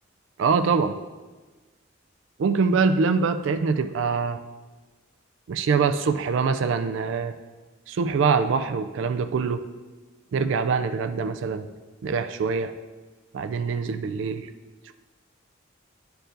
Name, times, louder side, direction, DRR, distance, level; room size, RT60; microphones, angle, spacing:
voice 1, 0.4-1.0 2.4-4.4 5.5-7.3 7.9-9.6 10.3-11.7 12.0-12.7 13.3-14.5 14.9-15.0, right 5 dB, 65° right, 9 dB, 0.3 m, -24 dB
11.0 x 4.6 x 2.6 m, 1.3 s
head